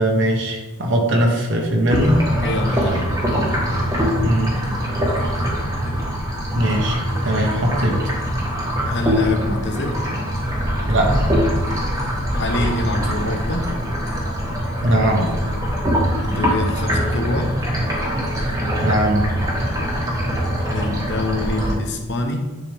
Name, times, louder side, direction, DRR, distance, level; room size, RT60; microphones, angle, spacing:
voice 1, 0.0-2.2 4.2-4.6 6.5-8.0 10.9-11.1 14.8-15.3 18.8-19.3, right 1 dB, 55° right, 0 dB, 1.2 m, -19 dB
sound 1, 1.9-21.7, equal, 15° right, 1.4 m, -22 dB
voice 2, 2.4-3.1 8.9-10.0 12.3-13.7 16.2-17.6 20.7-22.6, left 1 dB, 55° left, 4 dB, 0.9 m, -25 dB
10.0 x 4.3 x 3.6 m, 1.1 s
head